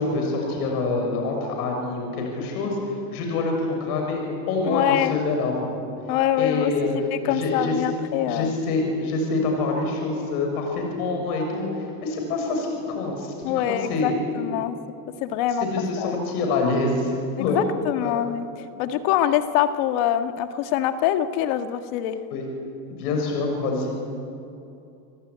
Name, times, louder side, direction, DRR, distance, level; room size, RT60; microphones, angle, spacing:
voice 1, 0.0-5.7 6.4-6.9 7.2-7.7 8.2-11.7 12.0-13.3 13.6-14.1 15.6-17.1 17.4-17.6 18.0-18.2 22.3-22.5 23.0-24.0, left 3 dB, 85° left, 2 dB, 6.8 m, -26 dB
voice 2, 4.6-5.2 6.1-8.5 13.4-14.8 15.2-15.7 16.0-16.1 17.4-18.5 18.8-22.2, left 11 dB, 65° left, 8 dB, 1.8 m, -24 dB
29.0 x 18.0 x 9.9 m, 2.7 s
supercardioid pair, 130°, 44 cm